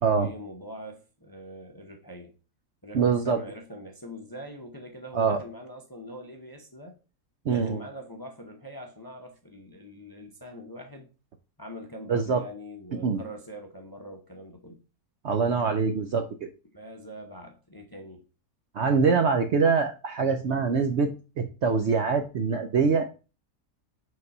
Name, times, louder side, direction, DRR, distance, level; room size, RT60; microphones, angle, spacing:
voice 1, 0.1-2.3 2.8-7.0 7.4-11.1 11.6-14.8 15.7-15.8 16.7-18.2, equal, 20° left, 0.6 m, -43 dB
voice 2, 2.9-3.4 5.1-5.4 7.5-7.8 12.1-12.4 13.0-13.2 15.2-16.5 18.7-23.0, right 5 dB, 60° right, 0.8 m, -24 dB
5.3 x 4.0 x 5.3 m
omnidirectional pair, 1.6 m